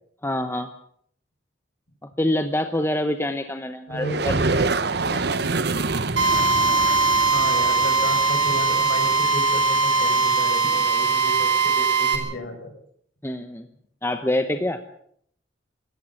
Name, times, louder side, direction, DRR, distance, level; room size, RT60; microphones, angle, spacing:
voice 1, 0.2-0.7 2.2-4.7 5.1-5.2 13.2-13.7 14.0-14.8, left 1 dB, 15° left, 8 dB, 0.9 m, -26 dB
voice 2, 3.9-4.2 7.3-12.7, left 1 dB, 55° left, 5 dB, 6.0 m, -32 dB
sound 1, 4.0-9.6, right 3 dB, 55° right, 1.0 m, -27 dB
Drill, 6.2-12.2, right 4 dB, 75° right, 5.2 m, -20 dB
27.0 x 14.0 x 7.3 m, 0.66 s
head